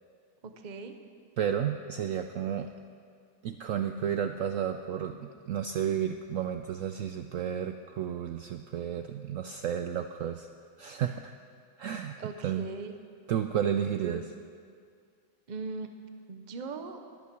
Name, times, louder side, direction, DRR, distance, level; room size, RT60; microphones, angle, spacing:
voice 1, 0.4-0.9 12.2-12.9 14.0-14.3 15.5-15.9 16.3-17.0, right 4 dB, 35° right, 7 dB, 0.8 m, -39 dB
voice 2, 1.4-2.7 3.4-10.5 10.8-11.3 11.8-12.2 12.4-12.6 13.3-14.2, right 9 dB, 70° right, 7 dB, 0.8 m, -32 dB
20.5 x 8.5 x 6.1 m, 2.2 s
omnidirectional pair, 1.8 m